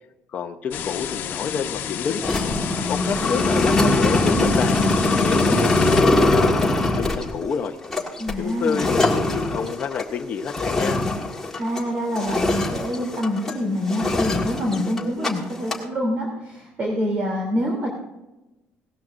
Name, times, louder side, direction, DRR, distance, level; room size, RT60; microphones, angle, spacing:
voice 1, 0.3-2.2 2.9-4.8 5.2-7.8 8.4-11.0, left 6 dB, 35° left, 4 dB, 0.8 m, -28 dB
sound 1, 0.7-6.0, left 9 dB, 55° left, 1.2 m, -31 dB
sound 2, 2.2-11.9 12.2-13.6 13.9-15.3 15.6-15.8, left 2 dB, 10° left, 1.7 m, -22 dB
voice 2, 2.7-3.4 5.4-5.7 8.2-8.9 11.6-17.9, left 1 dB, 30° right, -1 dB, 3.0 m, -26 dB
18.0 x 13.5 x 2.6 m, 1.0 s
cardioid pair, 155°, 4 cm